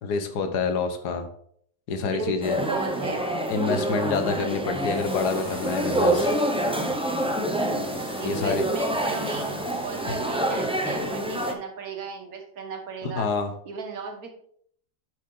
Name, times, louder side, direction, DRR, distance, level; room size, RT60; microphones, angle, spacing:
voice 1, 0.0-1.3 1.9-2.6 3.5-6.3 8.2-8.6 13.0-13.5, left 4 dB, 80° left, 7 dB, 1.5 m, -27 dB
voice 2, 2.0-3.3 8.2-13.3 13.6-14.3, right 4 dB, 65° right, 3 dB, 1.7 m, -35 dB
sound 1, 2.4-11.5, right 1 dB, 10° right, 0.3 m, -27 dB
sound 2, 4.0-10.9, equal, 40° left, 3.7 m, -46 dB
7.7 x 6.0 x 3.8 m, 0.64 s
omnidirectional pair, 1.7 m